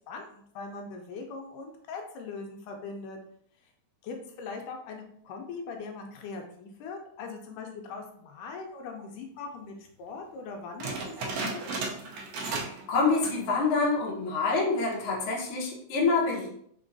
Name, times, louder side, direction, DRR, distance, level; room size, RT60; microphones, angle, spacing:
voice 1, 0.1-3.2 4.0-11.7, left 4 dB, 80° left, 3 dB, 2.1 m, -41 dB
sound 1, 10.8-12.9 13.1-13.5 14.0-14.1 14.7-15.1, right 3 dB, 85° right, 1.4 m, -34 dB
voice 2, 12.4-16.5, left 4 dB, 60° left, -3 dB, 1.4 m, -27 dB
5.2 x 3.8 x 2.6 m, 0.67 s
omnidirectional pair, 3.8 m